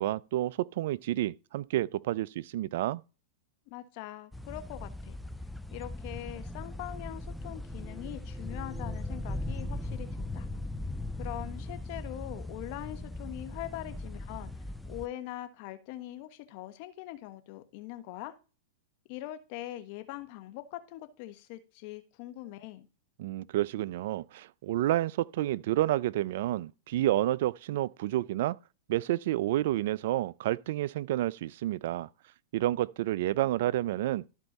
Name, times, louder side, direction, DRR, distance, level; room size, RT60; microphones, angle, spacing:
voice 1, 0.0-3.0 23.2-28.6 28.9-32.1 32.5-34.2, right 14 dB, 65° right, 0.4 m, -30 dB
voice 2, 3.7-5.2 5.7-10.5 11.2-18.4 19.1-22.9, left 14 dB, 50° left, 1.3 m, -42 dB
sound 1, 4.3-15.1, left 1 dB, 5° left, 0.4 m, -39 dB
13.0 x 4.5 x 4.1 m
hypercardioid pair, 120°, 0 cm